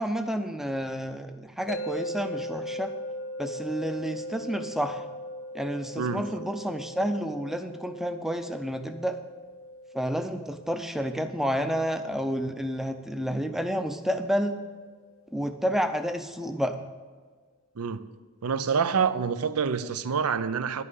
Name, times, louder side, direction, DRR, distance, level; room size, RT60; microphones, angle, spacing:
voice 1, 0.0-2.9 3.4-5.0 5.5-9.2 9.9-14.6 15.3-16.8, equal, ahead, 0.5 m, -30 dB
sound 1, 1.7-14.7, left 1 dB, 60° left, 0.7 m, -40 dB
voice 2, 17.8-18.1 18.4-20.8, right 6 dB, 85° right, 0.6 m, -27 dB
11.0 x 5.6 x 8.1 m
head